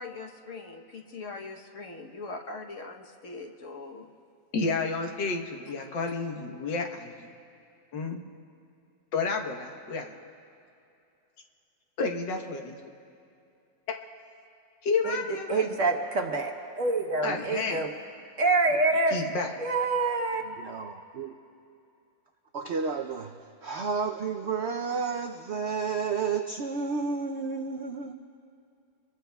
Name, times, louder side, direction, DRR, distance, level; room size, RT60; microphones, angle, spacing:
voice 1, 0.0-4.1, left 3 dB, 50° left, 2 dB, 1.2 m, -41 dB
voice 2, 4.5-7.3 7.9-8.2 9.1-10.2 12.0-12.7 14.8-15.7 17.2-17.9 19.1-19.5, left 4 dB, 90° left, 3 dB, 1.9 m, -30 dB
voice 3, 15.5-17.9 18.4-19.2 19.6-20.4, right 3 dB, 50° right, 3 dB, 1.2 m, -26 dB
voice 4, 20.5-21.3 22.5-23.3 23.6-28.1, right 5 dB, 75° right, 5 dB, 0.6 m, -31 dB
26.5 x 22.5 x 2.3 m, 2.6 s
omnidirectional pair, 1.9 m